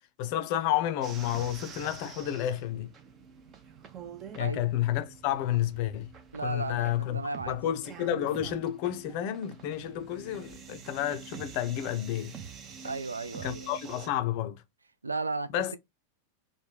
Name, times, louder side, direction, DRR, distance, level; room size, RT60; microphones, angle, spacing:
voice 1, 0.2-2.9 4.3-6.1 6.4-7.2 7.5-12.3 13.4-14.6 15.5-15.8, left 12 dB, 45° left, 0.4 m, -30 dB
sound 1, 1.0-14.1, right 6 dB, 30° right, 0.6 m, -47 dB
voice 2, 6.3-7.6 12.8-13.7 15.0-15.8, right 3 dB, 80° right, 0.3 m, -35 dB
3.1 x 2.1 x 3.3 m
figure-of-eight pair, 90°, 0 cm